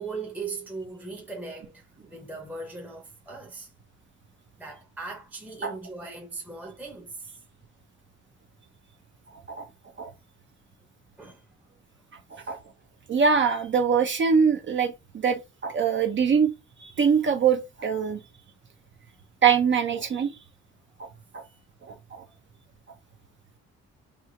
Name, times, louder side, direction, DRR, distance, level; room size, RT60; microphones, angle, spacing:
voice 1, 0.0-3.7 4.6-7.3 11.2-11.4 12.3-12.5, right 4 dB, 5° right, 0.7 m, -39 dB
voice 2, 9.3-9.7 10.0-10.1 12.3-12.6 13.1-16.5 16.8-18.2 19.4-20.3 21.0-21.1 21.3-21.4 21.8-22.2, right 6 dB, 40° right, 0.6 m, -23 dB
3.0 x 2.3 x 3.9 m
cardioid pair, 90°, 30 cm